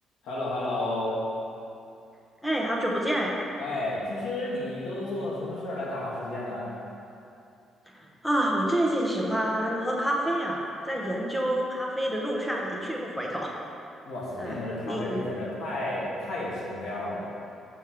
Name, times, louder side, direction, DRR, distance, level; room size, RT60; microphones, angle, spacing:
voice 1, 0.2-1.2 3.6-6.7 14.0-17.3, left 1 dB, 80° left, -6 dB, 1.9 m, -32 dB
voice 2, 2.4-3.3 7.9-13.5 14.4-14.6 14.8-15.2, right 1 dB, 5° left, -2 dB, 0.9 m, -28 dB
6.9 x 6.3 x 5.0 m, 2.6 s
cardioid pair, 175°, 0 cm